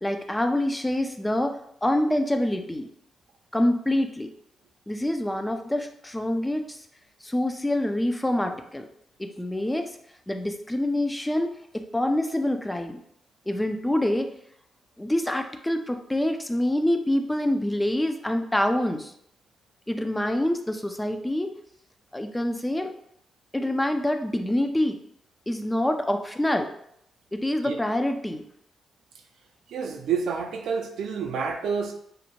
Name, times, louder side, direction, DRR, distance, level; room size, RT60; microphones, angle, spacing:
voice 1, 0.0-2.9 3.5-4.3 4.9-6.8 7.2-8.8 9.2-9.9 10.3-13.0 13.5-14.3 15.0-19.1 19.9-21.5 22.1-22.9 23.5-25.0 25.5-26.7 27.3-28.5, left 1 dB, 10° left, 6 dB, 0.3 m, -26 dB
voice 2, 29.7-31.9, right 6 dB, 80° right, 3 dB, 0.3 m, -28 dB
2.7 x 2.1 x 2.8 m, 0.70 s
cardioid pair, 65°, 0 cm